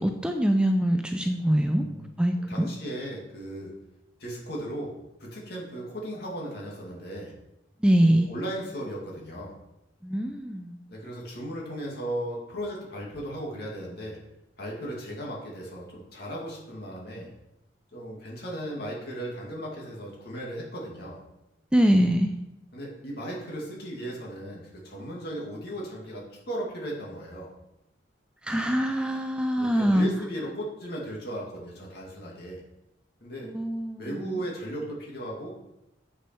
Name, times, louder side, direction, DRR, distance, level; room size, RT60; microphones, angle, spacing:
voice 1, 0.0-1.8 2.2-2.7 7.8-8.3 10.0-10.8 21.7-22.3 28.5-30.1 33.5-34.4, equal, 5° right, 5 dB, 0.4 m, -23 dB
voice 2, 1.7-2.1 2.5-3.7 4.2-4.9 5.2-7.3 8.0-9.6 10.9-14.2 14.6-17.3 17.9-21.2 22.7-27.5 29.6-32.6 33.2-33.5 34.0-35.5, right 1 dB, 55° left, -2 dB, 2.4 m, -36 dB
7.8 x 6.1 x 4.5 m, 0.90 s
head